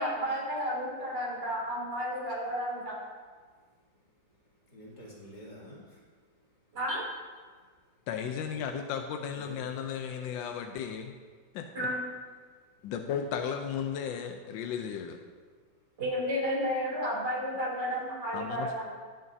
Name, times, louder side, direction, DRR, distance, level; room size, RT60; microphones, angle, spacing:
voice 1, 0.0-3.0 6.7-7.0 11.7-12.0 16.0-18.9, equal, 60° right, -5 dB, 3.6 m, -32 dB
voice 2, 3.4-6.8 9.3-9.6 12.5-12.9 15.5-16.0, equal, 55° left, -5 dB, 3.1 m, -52 dB
voice 3, 8.1-11.1 11.5-11.9 12.8-15.2 18.3-18.7, left 7 dB, 80° left, 5 dB, 1.3 m, -35 dB
19.0 x 6.5 x 2.7 m, 1.5 s
omnidirectional pair, 2.1 m